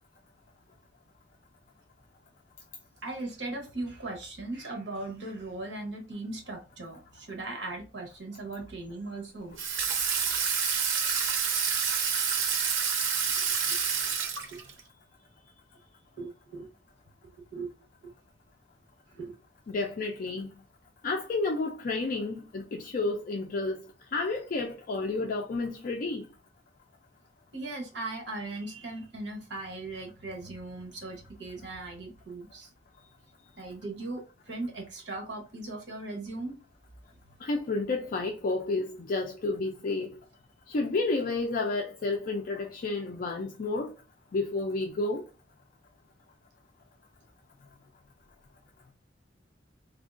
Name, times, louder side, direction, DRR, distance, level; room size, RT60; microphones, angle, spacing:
voice 1, 3.0-9.6 12.0-12.2 13.3-13.8 14.5-14.6 16.2-16.7 17.5-17.7 18.0-18.1 19.1-19.3 27.5-32.7 33.6-36.6, right 2 dB, 70° right, 1.0 m, -38 dB
Water tap faucet / Sink (filling or washing), 9.6-14.8, right 6 dB, 90° right, 0.6 m, -28 dB
voice 2, 19.7-20.5 21.0-23.8 24.1-26.3 37.4-40.1 40.7-43.9 44.3-45.2, left 3 dB, 50° left, 0.4 m, -31 dB
3.5 x 2.3 x 2.5 m
head